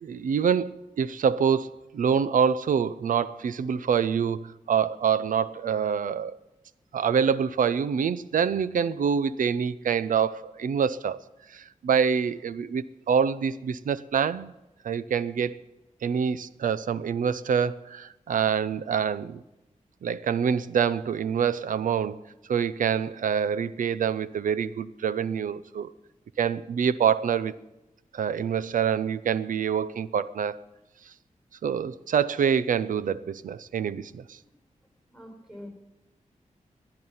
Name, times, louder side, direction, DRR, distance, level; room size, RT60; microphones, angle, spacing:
voice 1, 0.0-6.4 6.9-11.2 11.5-14.5 14.8-15.6 16.0-19.4 20.0-22.2 22.5-25.9 26.4-27.5 28.1-30.6 31.6-34.4, right 7 dB, 85° right, 16 dB, 0.6 m, -26 dB
voice 2, 35.1-35.7, left 1 dB, ahead, 3 dB, 5.3 m, -44 dB
18.5 x 11.0 x 5.7 m, 0.98 s
wide cardioid pair, 80°, 13 cm